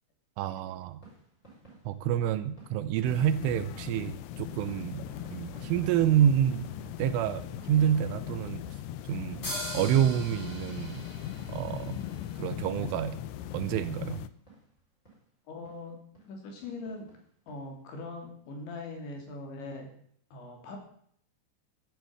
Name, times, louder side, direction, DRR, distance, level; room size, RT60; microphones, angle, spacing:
voice 1, 0.4-1.0 1.9-5.0 5.3-6.7 7.0-7.4 7.7-8.7 9.1-9.4 9.7-11.0 11.5-12.0 12.4-13.2 13.5-14.2, right 10 dB, 85° right, 12 dB, 3.3 m, -28 dB
sound 1, 0.9-14.8 15.1-15.2 15.6-15.8 16.1-16.3 16.6-17.6 18.0-18.1 18.3-18.4, right 3 dB, 15° left, 5.1 m, -53 dB
sound 2, 3.0-14.3, left 12 dB, 80° left, 2.7 m, -39 dB
sound 3, 9.4-13.0, left 1 dB, 35° left, 7.8 m, -41 dB
voice 2, 15.5-16.0 16.3-17.1 17.5-19.9 20.3-20.8, left 3 dB, 65° left, 2 dB, 5.1 m, -41 dB
14.0 x 8.8 x 7.7 m, 0.63 s
omnidirectional pair, 5.8 m